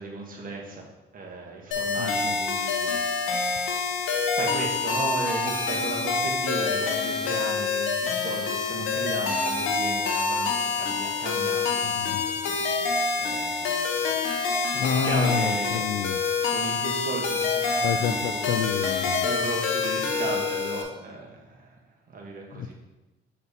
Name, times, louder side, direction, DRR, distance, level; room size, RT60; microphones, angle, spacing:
voice 1, 0.0-3.9 4.3-12.9 13.2-14.0 14.9-18.6 19.2-21.8 22.1-22.7, right 3 dB, 45° right, -2 dB, 1.7 m, -36 dB
sound 1, 1.7-20.8, left 4 dB, 90° left, 1.0 m, -27 dB
voice 2, 2.0-2.4 11.8-12.2 14.7-16.2 17.8-19.3 22.5-22.7, left 8 dB, 65° left, 7 dB, 0.4 m, -29 dB
6.9 x 4.2 x 4.2 m, 1.1 s
cardioid pair, 90°, 20 cm